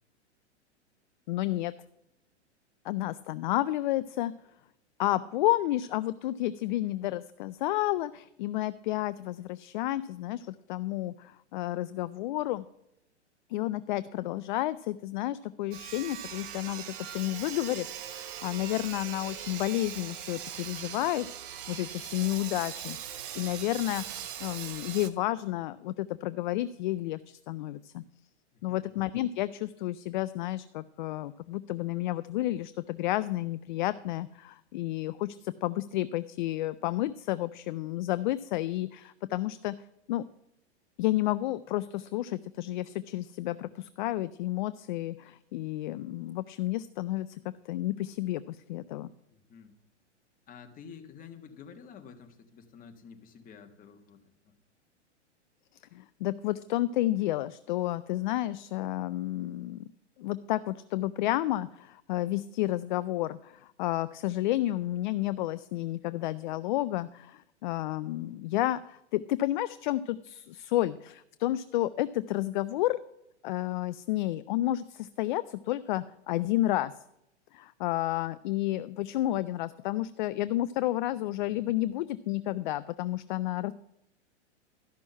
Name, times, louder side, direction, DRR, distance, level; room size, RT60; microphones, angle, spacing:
voice 1, 1.3-1.7 2.8-4.3 5.0-12.6 13.5-21.3 21.7-28.0 28.6-39.8 40.1-40.3 41.0-49.1 55.9-59.8 60.2-73.0 73.4-76.9 77.5-83.7, left 15 dB, 45° left, 16 dB, 0.4 m, -31 dB
Sawing, 15.7-25.1, right 10 dB, 50° right, 1.0 m, -40 dB
voice 2, 28.5-28.9 49.3-49.7 50.5-54.5, left 6 dB, 25° left, 5 dB, 1.3 m, -50 dB
12.5 x 6.1 x 5.6 m, 0.81 s
hypercardioid pair, 110°, 35 cm